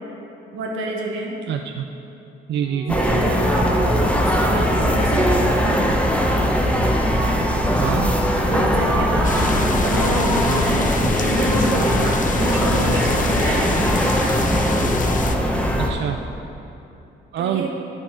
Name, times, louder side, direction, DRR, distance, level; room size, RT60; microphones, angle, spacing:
voice 1, 0.5-1.3 2.9-5.9 8.5-14.3 17.4-17.7, right 2 dB, 90° right, -1 dB, 1.5 m, -27 dB
voice 2, 1.5-1.9 2.5-3.0 7.8-8.1 15.8-16.2 17.3-17.7, right 9 dB, 65° right, 5 dB, 0.4 m, -25 dB
sound 1, 2.5-9.1, right 3 dB, 35° right, 1.2 m, -33 dB
sound 2, 2.9-15.9, equal, 5° left, 1.0 m, -20 dB
sound 3, 9.2-15.3, left 4 dB, 40° left, 0.7 m, -28 dB
10.0 x 6.1 x 5.0 m, 2.9 s
cardioid pair, 90°, 20 cm